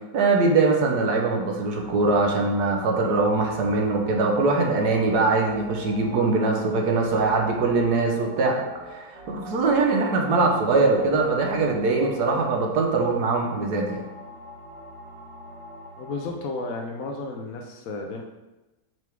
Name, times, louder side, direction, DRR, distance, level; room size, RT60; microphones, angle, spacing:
voice 1, 0.1-8.6 8.9-14.0, right 3 dB, 70° right, 1 dB, 1.4 m, -22 dB
sound 1, 1.7-16.3, equal, 45° right, 1.6 m, -43 dB
voice 2, 16.0-18.2, left 3 dB, 65° left, 1 dB, 0.9 m, -33 dB
5.9 x 3.5 x 4.6 m, 1.1 s
omnidirectional pair, 1.8 m